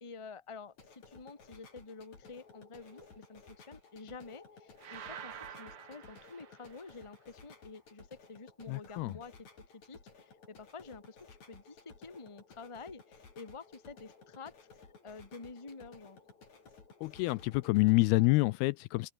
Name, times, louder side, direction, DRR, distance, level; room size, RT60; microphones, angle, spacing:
voice 1, 0.0-9.4 9.7-16.2, left 4 dB, 15° left, 1.1 m, -49 dB
sound 1, 0.7-17.9, left 4 dB, 45° left, 6.3 m, -57 dB
sound 2, 4.8-7.1, right 9 dB, 60° right, 3.9 m, -48 dB
voice 2, 8.7-9.1 17.0-19.1, left 22 dB, 80° left, 2.4 m, -27 dB
open air
omnidirectional pair, 4.7 m